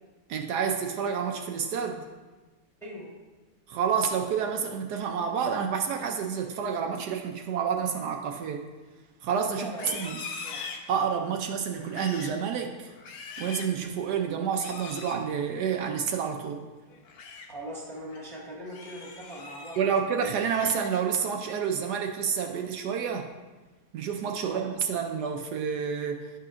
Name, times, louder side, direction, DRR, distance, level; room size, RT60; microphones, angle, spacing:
voice 1, 0.3-2.1 3.7-8.6 9.2-10.2 10.9-12.9 13.4-16.7 19.8-23.3 23.9-26.3, right 7 dB, 75° right, 3 dB, 1.1 m, -29 dB
voice 2, 9.5-10.0 10.4-10.6 17.5-20.3 24.4-24.7, equal, ahead, -4 dB, 1.4 m, -40 dB
Livestock farm animals working animals, 9.7-11.3 11.8-12.4 12.9-13.8 14.5-15.2 16.9-17.5 17.9-18.2 18.6-19.8 20.2-21.2 21.6-22.0 22.4-22.8, left 4 dB, 65° left, 1.1 m, -42 dB
11.0 x 5.6 x 2.5 m, 1.3 s
omnidirectional pair, 1.8 m